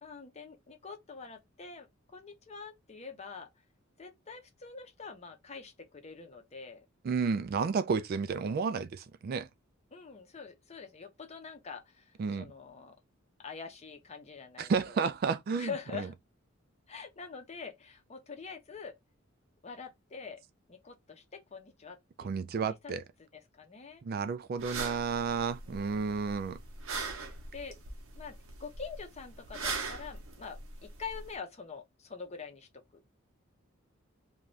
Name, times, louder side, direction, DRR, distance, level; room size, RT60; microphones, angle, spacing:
voice 1, 0.0-3.5 4.0-6.8 9.9-13.0 13.4-15.0 15.5-16.1 16.9-19.0 19.6-20.4 20.7-23.0 23.3-24.0 25.6-26.3 27.5-27.8 28.1-33.0, left 5 dB, 30° left, 0.6 m, -45 dB
voice 2, 7.0-9.5 12.2-12.5 14.6-16.1 22.2-23.0 24.0-26.6, right 5 dB, 45° right, 0.3 m, -32 dB
sound 1, 24.6-31.4, right 4 dB, 85° right, 0.8 m, -41 dB
2.6 x 2.3 x 3.1 m
head